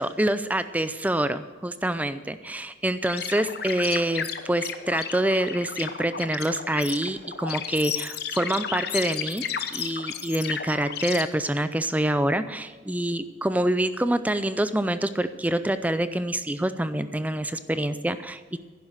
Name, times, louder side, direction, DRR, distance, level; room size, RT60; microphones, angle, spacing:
voice 1, 0.0-9.4 9.7-18.6, right 1 dB, 10° right, 12 dB, 0.5 m, -26 dB
sound 1, 3.1-11.2, left 8 dB, 55° left, 0.9 m, -33 dB
10.5 x 10.5 x 6.3 m, 1.4 s
head